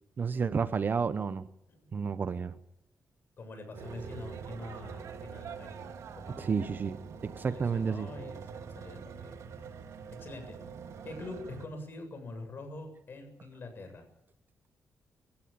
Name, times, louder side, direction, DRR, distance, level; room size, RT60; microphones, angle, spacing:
voice 1, 0.2-1.5 1.9-2.5 6.4-8.1, right 5 dB, 40° right, 13 dB, 1.0 m, -31 dB
voice 2, 3.4-6.5 7.4-9.6 10.2-10.6 11.0-14.1, left 2 dB, 45° left, 7 dB, 7.7 m, -45 dB
sound 1, 3.7-11.7, right 6 dB, 85° right, 2.4 m, -44 dB
28.5 x 16.0 x 8.6 m, 0.84 s
wide cardioid pair, 140°, 5 cm